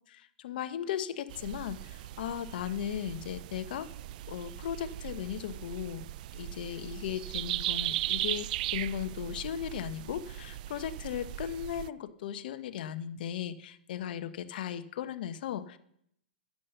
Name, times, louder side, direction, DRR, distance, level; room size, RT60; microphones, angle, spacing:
voice 1, 0.1-3.9 4.3-6.1 6.3-15.8, left 10 dB, 65° left, 11 dB, 1.0 m, -37 dB
sound 1, 1.3-11.9, right 15 dB, 55° right, 0.3 m, -38 dB
9.7 x 8.5 x 6.6 m, 0.72 s
hypercardioid pair, 115°, 5 cm